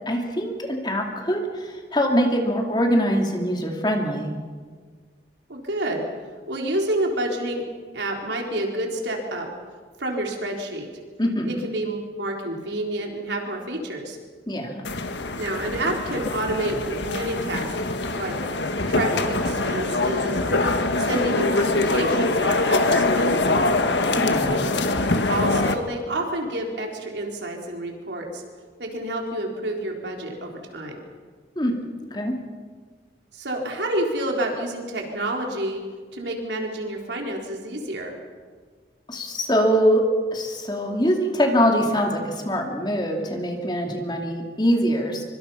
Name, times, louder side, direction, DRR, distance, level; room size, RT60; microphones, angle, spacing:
voice 1, 0.1-4.3 11.2-11.6 14.5-14.8 24.2-24.6 31.6-31.8 32.1-32.4 39.1-45.2, equal, 25° left, 2 dB, 2.7 m, -23 dB
voice 2, 5.5-6.1 6.5-7.6 7.9-9.5 10.0-10.9 11.5-14.2 15.4-17.7 18.2-18.4 18.9-20.6 21.0-23.5 25.3-28.4 28.8-31.0 33.3-35.8 36.1-38.1, right 1 dB, 85° right, 1 dB, 4.1 m, -29 dB
sound 1, 14.8-25.7, left 2 dB, 85° left, 1.6 m, -23 dB
24.5 x 24.0 x 5.8 m, 1.5 s
head